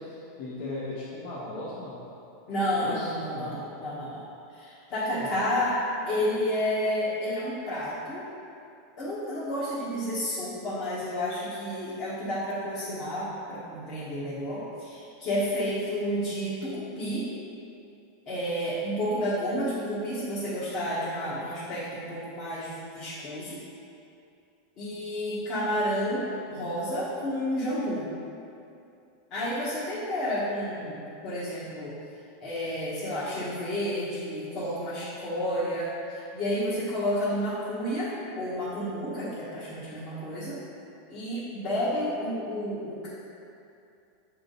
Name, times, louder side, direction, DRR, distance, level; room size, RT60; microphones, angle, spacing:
voice 1, 0.0-2.0 2.7-3.6 5.1-5.4, left 2 dB, 60° left, -8 dB, 1.1 m, -37 dB
voice 2, 2.5-4.2 4.5-5.8 6.0-8.2 9.0-17.3 18.3-23.6 24.8-28.1 29.3-31.9 32.4-40.6 41.1-43.1, equal, 40° left, -10 dB, 1.4 m, -31 dB
7.2 x 3.6 x 4.0 m, 2.6 s
supercardioid pair, 130°, 0 cm